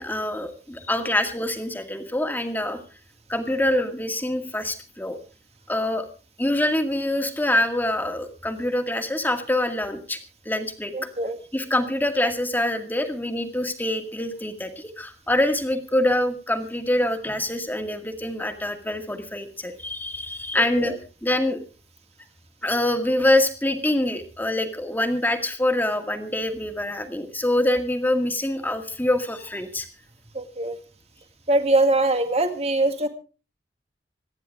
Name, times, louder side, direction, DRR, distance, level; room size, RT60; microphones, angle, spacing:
voice 1, 0.0-2.8 3.3-5.2 5.7-6.1 6.4-10.2 10.5-10.9 11.5-20.9 21.2-21.6 22.6-29.9, left 1 dB, 10° left, 5 dB, 2.0 m, -25 dB
voice 2, 10.9-11.4 20.5-21.0 30.3-30.8 31.5-33.1, right 2 dB, 35° right, 7 dB, 2.1 m, -22 dB
26.5 x 10.5 x 3.6 m, 0.36 s
head